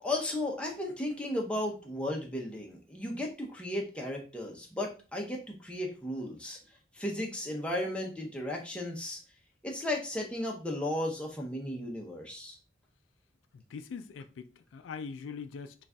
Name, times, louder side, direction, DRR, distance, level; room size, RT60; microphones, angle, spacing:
voice 1, 0.0-6.6 6.9-9.2 9.6-12.6, left 1 dB, 5° left, 0.6 m, -35 dB
voice 2, 13.5-15.8, left 5 dB, 90° left, 0.3 m, -42 dB
4.0 x 2.4 x 3.4 m
head